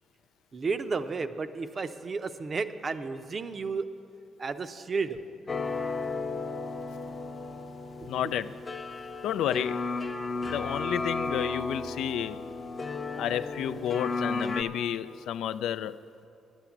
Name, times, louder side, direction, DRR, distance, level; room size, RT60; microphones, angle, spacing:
voice 1, 0.5-3.9 4.4-5.2, right 4 dB, 40° right, 10 dB, 0.6 m, -32 dB
sound 1, 5.5-14.6, left 3 dB, 30° left, 0.6 m, -34 dB
voice 2, 8.1-8.5 9.2-9.9 10.5-12.4 13.2-16.3, left 10 dB, 80° left, 13 dB, 0.3 m, -31 dB
9.9 x 8.9 x 7.1 m, 2.6 s
cardioid pair, 90°, 0 cm